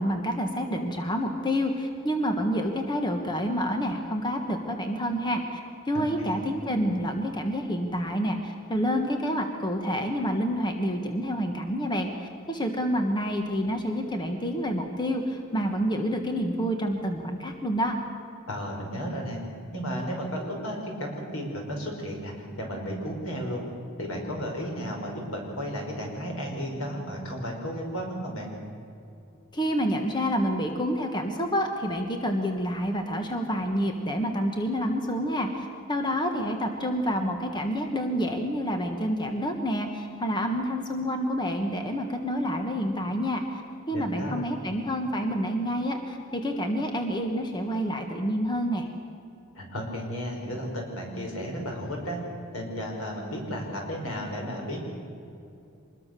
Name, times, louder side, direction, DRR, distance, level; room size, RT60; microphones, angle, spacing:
voice 1, 0.0-5.6 5.9-18.0 29.5-43.6 43.9-48.9, equal, 20° left, 4 dB, 1.5 m, -28 dB
voice 2, 5.9-6.4 18.5-19.4 19.7-23.6 24.0-28.5 43.9-44.4 49.5-52.2 52.5-54.8, equal, 80° left, 0 dB, 5.8 m, -33 dB
25.5 x 21.0 x 6.9 m, 2.6 s
head